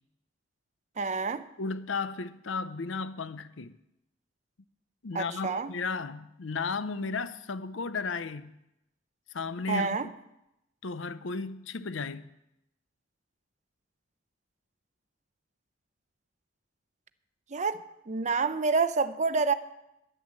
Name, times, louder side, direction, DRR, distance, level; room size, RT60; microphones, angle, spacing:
voice 1, 1.0-1.5 5.1-5.7 9.7-10.1 17.5-17.8 18.1-19.5, right 4 dB, 40° right, 0.6 m, -28 dB
voice 2, 1.6-3.7 5.0-8.5 9.3-10.0 10.8-12.3, left 4 dB, 90° left, 0.7 m, -34 dB
10.5 x 10.0 x 7.6 m
head